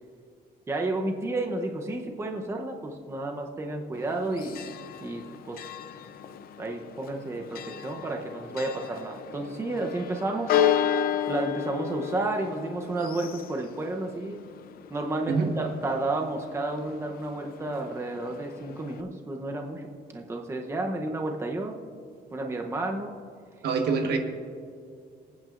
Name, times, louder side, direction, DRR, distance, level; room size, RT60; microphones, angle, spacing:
voice 1, 0.7-4.7 5.0-5.7 6.6-10.5 11.3-14.4 14.9-21.8 22.3-23.1, right 2 dB, 15° right, 2 dB, 0.7 m, -31 dB
Church bell, 3.9-19.0, left 9 dB, 60° left, 0.6 m, -33 dB
voice 2, 23.6-24.2, right 5 dB, 75° right, 4 dB, 1.3 m, -25 dB
25.5 x 9.1 x 2.5 m, 2.3 s
cardioid pair, 160°, 17 cm